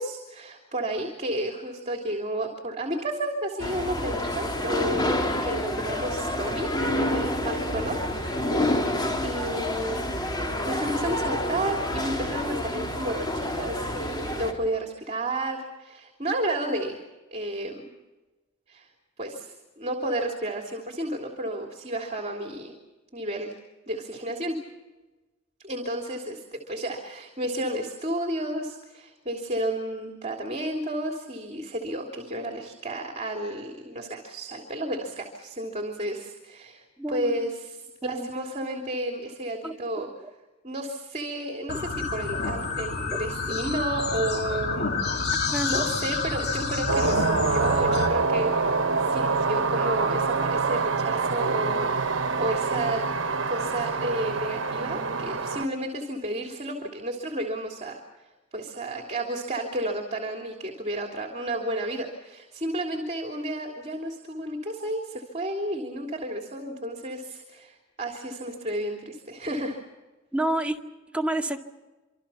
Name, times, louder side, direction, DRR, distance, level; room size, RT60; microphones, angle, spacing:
voice 1, 0.0-8.5 9.2-10.1 10.6-17.0 17.3-17.8 18.7-18.9 19.2-22.7 23.1-23.5 23.9-24.6 25.6-40.1 40.6-45.0 45.6-53.0 53.5-58.0 58.5-69.8, right 1 dB, 35° right, 2 dB, 3.3 m, -32 dB
sound 1, 3.6-14.5, left 1 dB, 20° left, 4.0 m, -28 dB
voice 2, 37.0-37.5 38.0-38.3 39.6-40.3 41.6-41.7 43.1-43.2 45.5-45.9 70.3-70.8 71.1-71.6, right 1 dB, 5° right, 2 dB, 2.1 m, -30 dB
sound 2, 41.7-48.1, left 4 dB, 55° left, 2.9 m, -29 dB
sound 3, 46.9-55.7, right 4 dB, 70° right, 1.2 m, -26 dB
26.5 x 26.0 x 5.8 m, 1.1 s
head